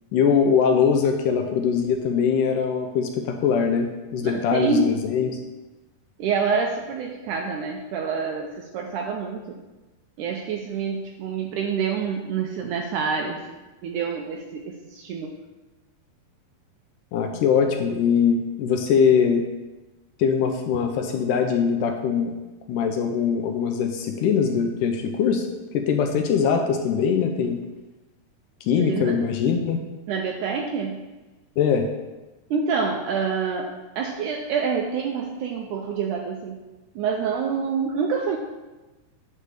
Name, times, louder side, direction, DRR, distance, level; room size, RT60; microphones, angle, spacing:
voice 1, 0.1-5.3 17.1-19.5 20.2-22.3 22.7-25.5 25.7-27.6 28.6-29.8 31.6-31.9, left 6 dB, 80° left, 4 dB, 2.0 m, -22 dB
voice 2, 4.2-4.9 6.2-9.6 10.2-13.6 13.8-15.4 28.8-29.2 30.1-31.0 32.5-33.7 34.0-36.6 37.0-38.4, right 5 dB, 85° right, 2 dB, 1.8 m, -27 dB
9.7 x 3.2 x 6.6 m, 1.1 s
omnidirectional pair, 4.1 m